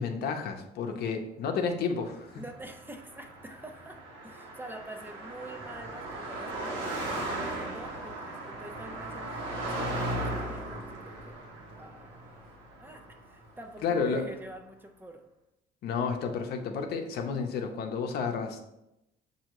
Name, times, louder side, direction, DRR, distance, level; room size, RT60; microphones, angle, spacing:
voice 1, 0.0-2.4 13.8-14.3 15.8-18.7, left 5 dB, 70° left, 5 dB, 0.7 m, -31 dB
voice 2, 2.3-11.5 11.7-12.5 12.8-15.3, right 1 dB, 10° right, 5 dB, 0.4 m, -46 dB
Car passing by, 2.3-13.8, right 1 dB, 90° right, 1.2 m, -37 dB
6.3 x 2.7 x 2.9 m, 0.85 s
cardioid pair, 110°, 17 cm